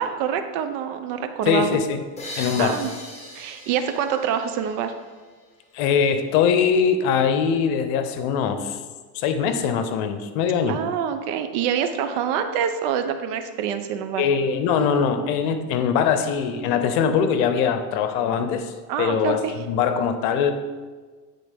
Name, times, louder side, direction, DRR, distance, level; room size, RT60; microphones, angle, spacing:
voice 1, 0.0-1.8 2.3-2.9 3.3-4.9 10.7-14.2 18.9-19.5, right 8 dB, 60° right, 8 dB, 0.8 m, -26 dB
voice 2, 1.5-2.0 2.4-2.8 5.7-8.8 9.1-10.8 14.2-19.4 19.7-20.5, left 7 dB, 60° left, 9 dB, 0.8 m, -22 dB
sound 1, 2.2-5.7, left 1 dB, 15° left, 1.6 m, -40 dB
9.3 x 3.7 x 3.6 m, 1.4 s
hypercardioid pair, 95°, 50 cm